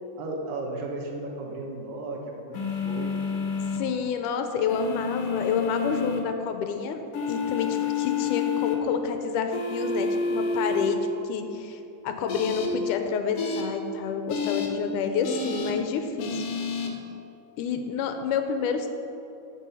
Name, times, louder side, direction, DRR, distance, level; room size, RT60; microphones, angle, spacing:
voice 1, 0.2-3.2, right 2 dB, 85° right, 0 dB, 3.0 m, -35 dB
sound 1, 2.5-3.8 4.7-6.2 7.1-8.7 9.5-10.9 12.3-12.7 13.4-13.6 14.3-14.7 15.2-15.7 16.2-16.9, left 5 dB, 60° left, 1.8 m, -29 dB
voice 2, 3.7-7.0 7.3-11.0 11.2-16.4 17.6-18.9, left 6 dB, 80° left, 6 dB, 2.2 m, -29 dB
14.0 x 6.4 x 5.5 m, 2.8 s
omnidirectional pair, 3.8 m